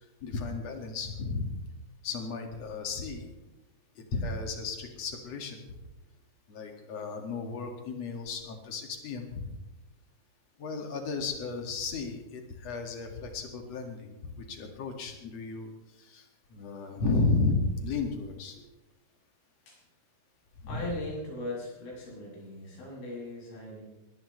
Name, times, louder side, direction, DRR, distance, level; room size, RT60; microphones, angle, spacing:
voice 1, 0.2-1.5 2.0-3.3 4.1-5.6 6.5-9.4 10.6-15.7 16.1-16.2 16.5-17.6 17.8-18.6 20.6-20.9, left 3 dB, 50° left, 3 dB, 2.1 m, -33 dB
voice 2, 20.7-23.8, left 1 dB, 65° left, -4 dB, 9.3 m, -39 dB
21.5 x 18.0 x 3.2 m, 1.1 s
omnidirectional pair, 5.8 m